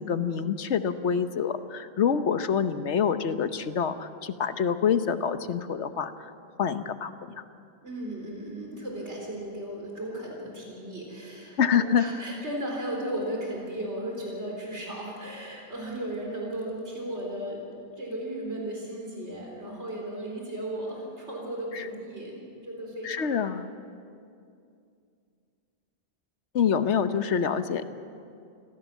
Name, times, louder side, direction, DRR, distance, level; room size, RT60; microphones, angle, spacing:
voice 1, 0.0-6.1 6.6-7.1 11.6-12.1 21.7-21.8 23.0-23.7 26.5-27.8, left 7 dB, 80° left, 10 dB, 1.2 m, -26 dB
voice 2, 7.8-17.6 18.0-22.4 22.6-23.3, right 1 dB, 75° right, -1 dB, 4.1 m, -35 dB
26.5 x 16.5 x 7.3 m, 2.4 s
omnidirectional pair, 1.2 m